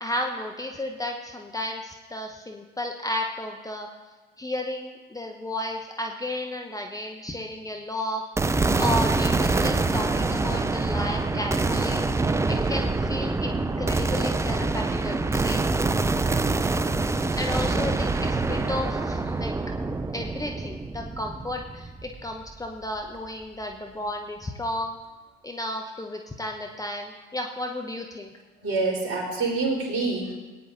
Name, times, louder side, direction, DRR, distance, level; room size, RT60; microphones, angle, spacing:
voice 1, 0.0-3.9 4.4-8.3 8.8-12.1 12.5-15.6 17.3-19.5 20.1-25.0 25.4-28.3, left 1 dB, 10° left, 2 dB, 0.9 m, -33 dB
sound 1, 8.4-22.7, right 3 dB, 10° right, 0.4 m, -25 dB
voice 2, 28.6-30.3, right 3 dB, 50° right, -2 dB, 4.0 m, -26 dB
19.0 x 9.5 x 2.7 m, 1.3 s
figure-of-eight pair, 65°, 31 cm